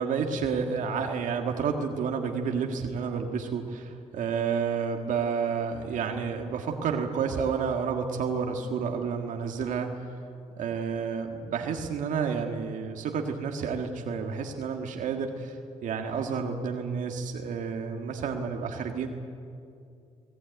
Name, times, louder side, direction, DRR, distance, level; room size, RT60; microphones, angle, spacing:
voice 1, 0.0-10.1 10.6-19.1, right 6 dB, 80° right, 3 dB, 1.8 m, -30 dB
22.0 x 19.0 x 9.4 m, 2.5 s
cardioid pair, 90°, 13 cm